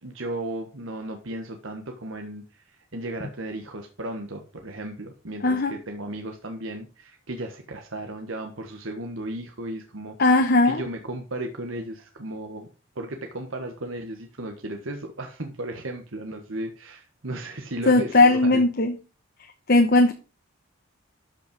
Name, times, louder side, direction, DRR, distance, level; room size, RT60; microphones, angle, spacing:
voice 1, 0.0-10.2 10.6-12.7 12.9-18.6, right 1 dB, 65° right, 4 dB, 1.4 m, -35 dB
voice 2, 5.4-5.7 10.2-10.8 17.9-19.0 19.7-20.1, left 2 dB, 45° left, 6 dB, 1.0 m, -18 dB
13.0 x 5.6 x 5.3 m, 0.33 s
head